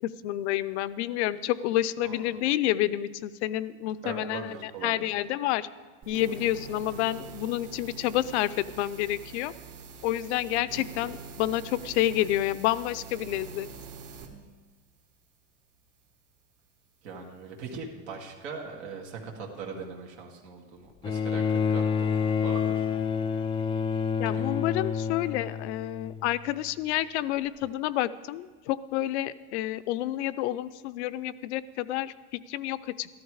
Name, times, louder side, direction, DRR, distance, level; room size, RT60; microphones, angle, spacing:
voice 1, 0.0-5.7 6.1-9.5 10.0-13.7 24.2-33.2, left 14 dB, 80° left, 16 dB, 0.6 m, -29 dB
voice 2, 4.0-5.0 17.0-22.9 24.3-24.6, right 5 dB, 85° right, -1 dB, 2.2 m, -40 dB
sound 1, 6.0-14.3, right 5 dB, 55° right, 1.8 m, -44 dB
Bowed string instrument, 21.0-26.5 27.6-27.7, left 6 dB, 15° left, 0.4 m, -28 dB
14.0 x 12.0 x 4.8 m, 1.4 s
supercardioid pair, 135°, 34 cm